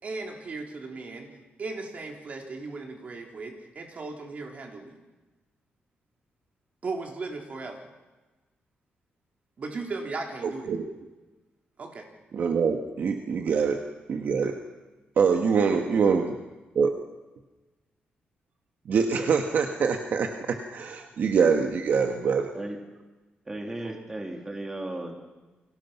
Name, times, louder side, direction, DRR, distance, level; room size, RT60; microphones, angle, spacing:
voice 1, 0.0-1.3 1.6-5.0 6.8-7.9 9.6-10.7 11.8-12.1, right 3 dB, 40° right, 1 dB, 4.3 m, -37 dB
voice 2, 10.4-10.9 12.3-13.8 14.1-14.6 15.2-16.4 16.8-16.9 18.9-22.5, right 6 dB, 55° right, 4 dB, 1.7 m, -24 dB
voice 3, 23.4-25.2, right 1 dB, 15° right, 2 dB, 3.1 m, -35 dB
30.0 x 24.5 x 6.0 m, 1.2 s
wide cardioid pair, 155°, 4 cm